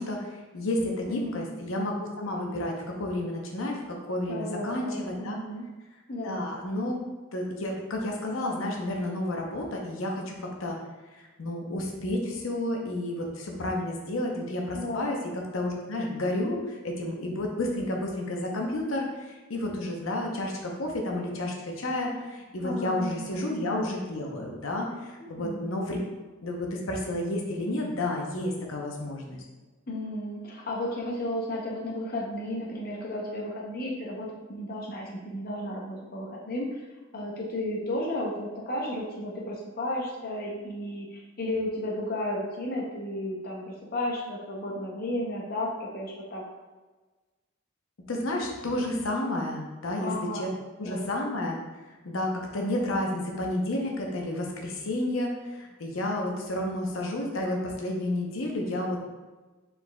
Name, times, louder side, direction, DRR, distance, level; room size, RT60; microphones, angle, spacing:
voice 1, 0.0-5.4 6.2-7.0 7.3-10.8 11.1-26.0 26.4-29.4 48.1-50.5 50.8-51.6 51.9-59.0, left 1 dB, 85° left, 0 dB, 0.7 m, -31 dB
voice 2, 1.1-1.5 4.3-5.7 6.1-6.4 14.7-15.1 22.6-23.5 25.4-25.7 29.9-36.7 37.1-46.4 50.0-50.5 50.8-51.3, left 1 dB, 45° left, -2 dB, 0.6 m, -33 dB
4.8 x 3.9 x 2.2 m, 1.2 s
head